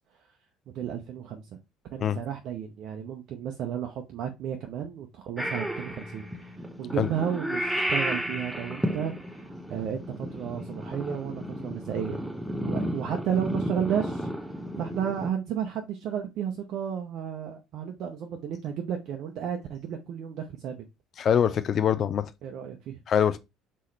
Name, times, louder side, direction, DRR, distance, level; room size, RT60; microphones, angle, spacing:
voice 1, 0.7-1.6 1.9-6.5 6.8-12.2 12.6-14.3 14.8-20.8 22.4-23.0, right 8 dB, 55° right, 0.6 m, -33 dB
Purr / Meow, 5.4-15.3, equal, 5° right, 0.9 m, -33 dB
voice 2, 21.2-22.3 23.1-23.4, left 8 dB, 45° left, 0.5 m, -23 dB
4.2 x 3.8 x 3.1 m
figure-of-eight pair, 55°, 0 cm